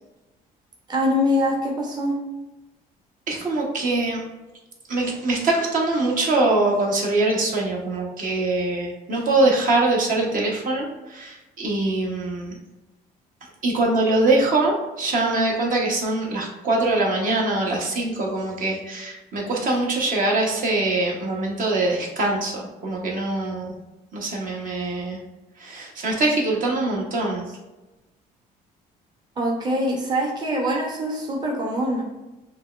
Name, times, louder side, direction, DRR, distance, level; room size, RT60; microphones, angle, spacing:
voice 1, 0.9-2.2 29.4-32.0, equal, 25° right, -2 dB, 0.7 m, -23 dB
voice 2, 3.3-4.2 4.9-12.6 13.6-23.7 24.1-25.2 25.6-27.4, right 2 dB, 50° right, -1 dB, 0.9 m, -23 dB
5.8 x 2.2 x 2.3 m, 1.1 s
cardioid pair, 110°, 17 cm